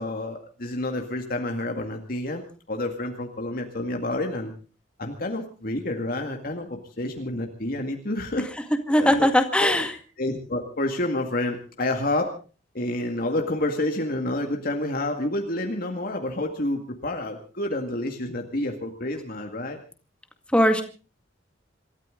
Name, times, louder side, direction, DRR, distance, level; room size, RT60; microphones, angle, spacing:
voice 1, 0.0-4.5 5.0-8.5 9.0-9.3 9.6-9.7 10.2-12.3 12.7-19.8, left 1 dB, 50° left, 3 dB, 2.0 m, -29 dB
voice 2, 8.9-9.9 20.5-20.8, equal, 5° left, 6 dB, 2.0 m, -19 dB
27.0 x 13.5 x 3.9 m, 0.37 s
head